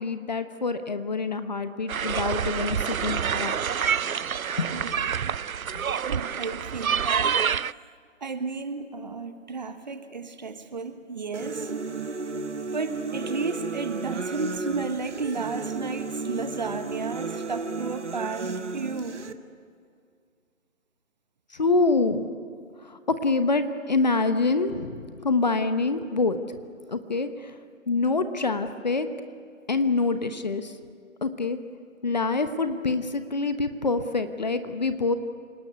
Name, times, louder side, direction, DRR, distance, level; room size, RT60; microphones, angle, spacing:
voice 1, 0.0-3.5 4.6-4.7 5.7-5.8 9.0-9.1 21.5-22.3 22.9-26.6 26.9-27.5 27.9-29.1 29.7-30.7 31.2-31.6 32.0-35.1, left 3 dB, 30° left, 10 dB, 1.1 m, -26 dB
sound 1, 1.9-7.7, right 7 dB, 90° right, 0.6 m, -27 dB
voice 2, 4.7-5.3 6.0-7.4 7.7-7.8 8.2-11.8 12.7-19.3, right 4 dB, 35° right, 9 dB, 1.4 m, -33 dB
sound 2, 11.3-19.3, right 3 dB, 55° right, 1.6 m, -33 dB
28.5 x 19.0 x 9.6 m, 2.3 s
figure-of-eight pair, 160°, 41 cm